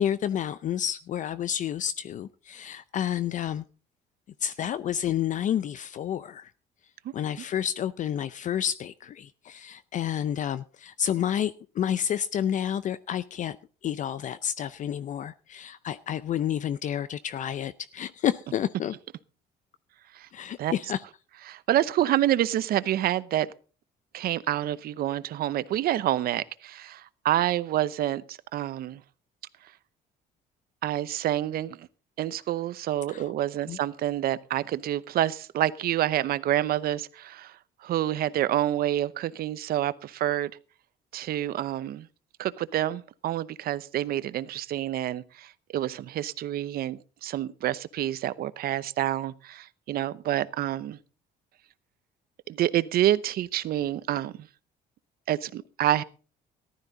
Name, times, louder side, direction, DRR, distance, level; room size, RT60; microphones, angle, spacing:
voice 1, 0.0-3.6 4.4-6.5 7.1-13.6 13.8-19.0 20.3-21.0 33.1-33.3 33.7-33.8, left 10 dB, 50° left, 0.5 m, -30 dB
voice 2, 21.5-23.5 24.1-29.0 30.8-31.9 32.2-40.5 41.1-42.1 42.4-51.0 52.5-54.3 55.3-56.0, right 13 dB, 65° right, 0.8 m, -28 dB
14.5 x 12.5 x 4.0 m
cardioid pair, 110°, 17 cm